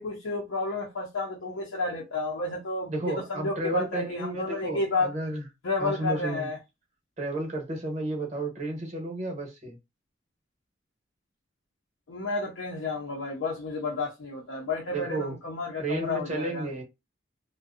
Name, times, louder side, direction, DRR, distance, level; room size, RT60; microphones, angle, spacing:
voice 1, 0.0-5.1 5.6-6.6 12.1-16.6, left 3 dB, 85° left, 0.6 m, -31 dB
voice 2, 2.9-5.4 5.8-6.5 7.2-9.8 14.9-15.4 15.8-16.8, right 2 dB, 35° right, 0.9 m, -32 dB
2.6 x 2.1 x 2.4 m
head